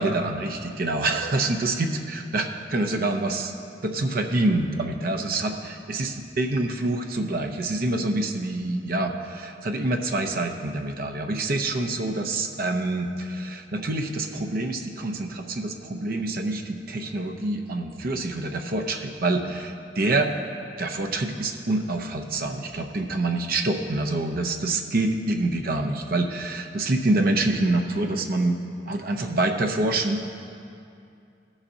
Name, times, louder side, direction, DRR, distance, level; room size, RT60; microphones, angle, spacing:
voice 1, 0.0-3.5 3.8-20.3 20.8-28.6 28.9-30.2, right 2 dB, 55° right, 4 dB, 0.6 m, -26 dB
17.0 x 7.1 x 2.7 m, 2.5 s
head